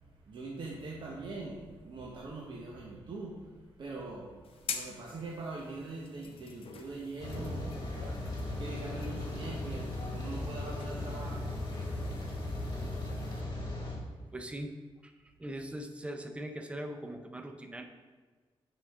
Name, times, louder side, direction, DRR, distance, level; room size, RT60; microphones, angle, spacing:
voice 1, 0.2-11.5, right 2 dB, 55° right, -2 dB, 0.9 m, -43 dB
sound 1, 4.4-13.4, left 6 dB, 70° left, 0.7 m, -48 dB
Rain, 7.2-14.0, left 1 dB, 40° left, 2.1 m, -37 dB
voice 2, 14.3-14.7 15.0-17.8, right 1 dB, 10° right, 5 dB, 0.6 m, -41 dB
8.6 x 5.1 x 3.6 m, 1.4 s
wide cardioid pair, 120°, 10 cm